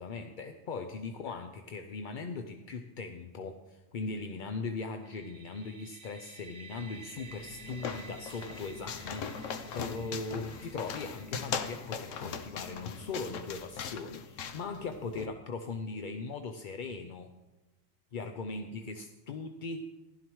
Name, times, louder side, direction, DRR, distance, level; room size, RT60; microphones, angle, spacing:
voice 1, 0.0-17.3 18.1-20.0, left 4 dB, 50° left, 6 dB, 0.6 m, -39 dB
sound 1, 5.0-14.7, right 4 dB, 30° right, 0.6 m, -54 dB
sound 2, 7.1-15.3, left 6 dB, 75° left, 1.1 m, -40 dB
15.0 x 12.0 x 3.1 m, 1.1 s
omnidirectional pair, 1.3 m